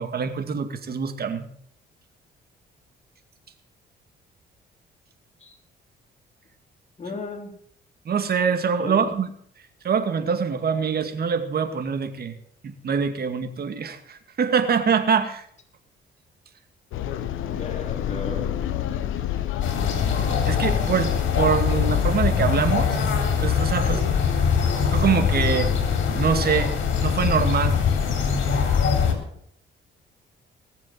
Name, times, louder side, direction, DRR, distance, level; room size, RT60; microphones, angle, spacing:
voice 1, 0.0-1.5 8.1-9.3 9.8-12.3 12.6-15.5 20.5-23.0 23.4-24.0 24.9-25.7 26.2-26.7 27.0-27.8, right 6 dB, 50° right, 7 dB, 2.3 m, -24 dB
voice 2, 7.0-7.5 8.8-9.1 17.5-18.5 21.7-21.8 23.9-24.0, left 3 dB, 35° left, 2 dB, 3.8 m, -35 dB
sound 1, 16.9-22.3, left 10 dB, 90° left, 1.1 m, -28 dB
sound 2, 19.6-29.1, left 6 dB, 75° left, 3.6 m, -23 dB
19.5 x 7.5 x 7.5 m, 0.64 s
cardioid pair, 90°, 20 cm